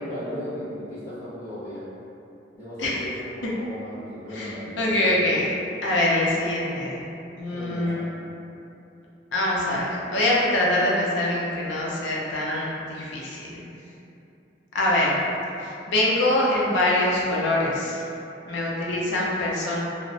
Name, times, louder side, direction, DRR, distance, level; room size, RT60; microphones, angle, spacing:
voice 1, 0.0-1.9 2.5-5.4 7.5-8.2 18.8-19.0, equal, 15° left, -15 dB, 1.4 m, -36 dB
voice 2, 4.3-5.5 5.8-7.0 7.4-8.1 9.3-13.6 14.7-15.2 15.6-18.0 18.5-19.8, left 1 dB, 80° left, -4 dB, 0.5 m, -24 dB
2.9 x 2.1 x 2.6 m, 2.8 s
head